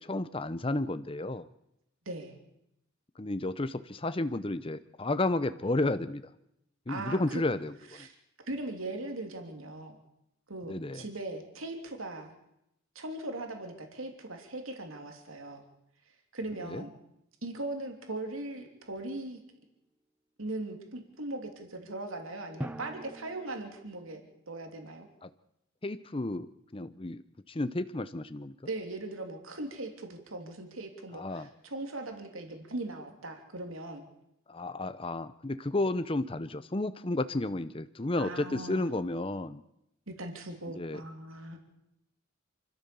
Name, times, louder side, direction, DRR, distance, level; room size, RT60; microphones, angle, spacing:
voice 1, 0.0-1.5 3.2-6.2 6.9-8.1 10.7-11.0 16.7-16.8 25.2-25.3 25.8-28.5 31.1-31.5 34.5-39.6 40.8-41.0, left 2 dB, 25° left, 12 dB, 0.7 m, -32 dB
voice 2, 2.0-2.4 6.9-7.4 7.9-8.1 8.4-10.0 10.5-12.4 12.9-15.7 16.3-16.9 17.4-19.4 20.4-24.2 24.5-25.1 28.7-34.0 38.1-38.9 40.1-41.6, right 2 dB, 80° right, 4 dB, 3.2 m, -39 dB
Drum, 22.6-24.4, right 1 dB, 5° right, 0.8 m, -43 dB
28.0 x 13.5 x 7.0 m, 0.84 s
head